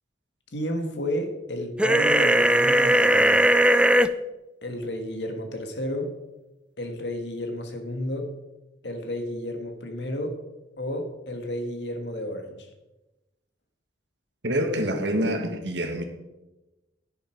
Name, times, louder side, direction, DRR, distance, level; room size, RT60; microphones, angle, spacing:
voice 1, 0.5-3.5 4.6-6.1 6.8-8.3 8.8-10.4 10.8-12.7, left 1 dB, 65° left, 1.8 m, -31 dB
sound 1, 1.8-4.1, right 1 dB, 5° right, 0.4 m, -18 dB
voice 2, 14.4-16.0, equal, 70° right, 1.7 m, -26 dB
10.5 x 10.0 x 4.6 m
head